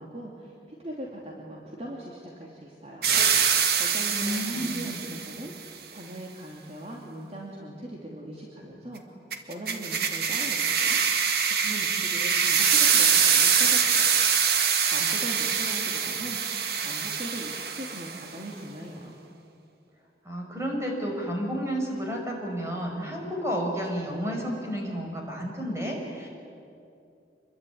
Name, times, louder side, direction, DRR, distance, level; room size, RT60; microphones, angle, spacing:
voice 1, 0.0-3.1 3.4-9.0 9.5-14.2 14.9-19.2, right 1 dB, 35° right, -2 dB, 2.8 m, -40 dB
sound 1, 3.0-5.4 9.3-18.2, right 7 dB, 60° right, 1.9 m, -24 dB
voice 2, 4.1-5.0 20.3-26.3, equal, 15° right, 0 dB, 5.4 m, -31 dB
27.0 x 22.5 x 9.5 m, 2.5 s
head